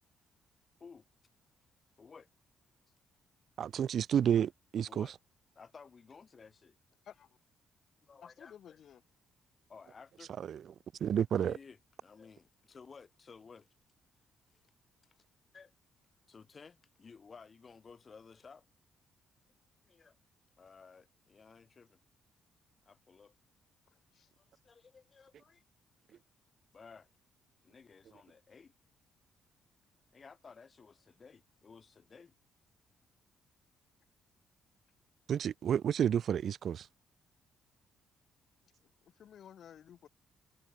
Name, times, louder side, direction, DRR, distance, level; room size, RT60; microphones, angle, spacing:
voice 1, 2.0-2.3 4.9-5.2 5.6-6.8 8.0-8.8 9.7-10.8 11.3-13.7 14.5-14.7 15.1-15.2 15.5-15.7 16.3-18.6 19.8-20.2 20.6-22.0 22.9-23.3 24.4-25.6 26.1-26.2 26.7-27.1 27.6-28.7 30.1-32.3, left 5 dB, 40° left, 7.0 m, -56 dB
voice 2, 3.6-5.1 10.4-10.6 11.0-11.6 35.3-36.9, right 9 dB, 60° right, 1.7 m, -30 dB
voice 3, 8.2-9.0 24.1-24.3 39.2-40.1, left 9 dB, 65° left, 2.5 m, -54 dB
cardioid pair, 90°, 0 cm